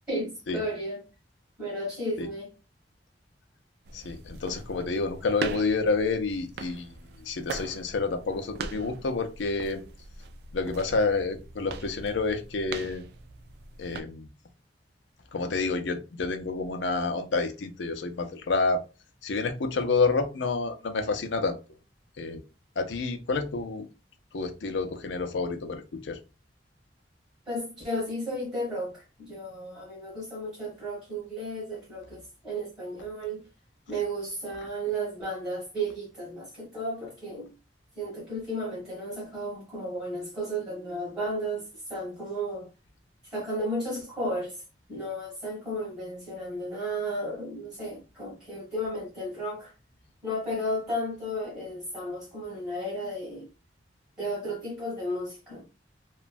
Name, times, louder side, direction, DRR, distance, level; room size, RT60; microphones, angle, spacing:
voice 1, 0.1-1.1 1.6-2.5 27.5-33.4 33.9-37.5 37.9-42.7 43.2-44.6 44.9-49.7 50.2-53.5 54.2-55.7, equal, 20° right, 1.3 m, -33 dB
voice 2, 3.9-9.8 10.5-13.0 13.8-14.3 15.3-18.8 19.2-21.6 22.2-22.4 22.8-23.9 24.3-26.2, left 3 dB, 85° left, 0.5 m, -29 dB
sound 1, 3.9-14.0, right 4 dB, 60° right, 0.3 m, -41 dB
3.1 x 2.2 x 2.5 m
head